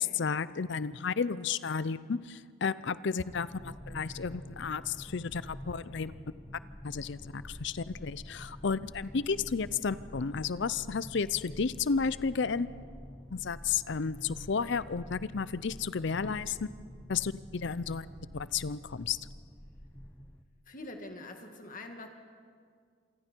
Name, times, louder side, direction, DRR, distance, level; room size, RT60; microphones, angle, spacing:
voice 1, 0.0-6.1 6.8-12.7 13.3-16.7 17.1-18.1 18.3-19.2, left 5 dB, 60° left, 16 dB, 0.5 m, -32 dB
sound 1, 3.3-20.4, equal, 5° left, 0.7 m, -47 dB
voice 2, 20.7-22.1, left 2 dB, 40° left, 4 dB, 2.0 m, -44 dB
27.5 x 23.5 x 4.5 m, 2.1 s
head